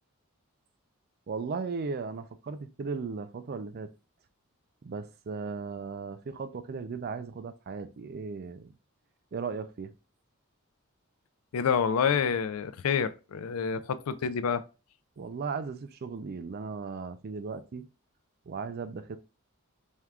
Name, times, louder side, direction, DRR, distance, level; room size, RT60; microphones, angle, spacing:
voice 1, 1.3-3.9 4.8-8.7 9.3-9.9 15.2-17.9 18.5-19.2, right 4 dB, 45° right, 0.4 m, -36 dB
voice 2, 11.5-14.6, left 6 dB, 80° left, 0.4 m, -28 dB
4.4 x 3.4 x 2.4 m
head